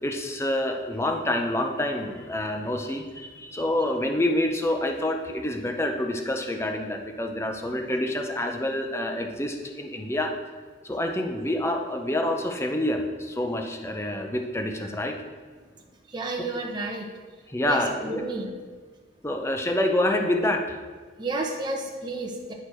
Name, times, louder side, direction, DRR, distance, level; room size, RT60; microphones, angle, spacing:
voice 1, 0.0-10.3 10.8-15.2 17.5-18.2 19.2-20.8, left 1 dB, 15° left, 4 dB, 0.6 m, -27 dB
voice 2, 16.1-17.1 17.7-18.5 21.2-22.5, right 2 dB, 25° right, 1 dB, 0.9 m, -31 dB
9.9 x 4.7 x 4.5 m, 1.5 s
head